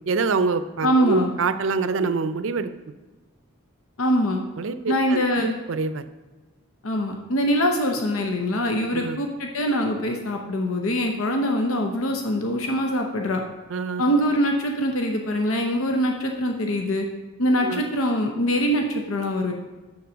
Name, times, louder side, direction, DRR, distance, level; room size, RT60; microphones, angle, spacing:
voice 1, 0.1-2.7 4.6-6.0 8.9-9.2 13.7-14.0 17.6-17.8, right 4 dB, 70° right, 11 dB, 0.5 m, -25 dB
voice 2, 0.8-1.3 4.0-4.4 4.9-5.5 6.8-13.4 14.0-17.1 17.4-19.5, equal, 85° left, 3 dB, 0.8 m, -23 dB
7.0 x 6.8 x 5.1 m, 1.2 s
head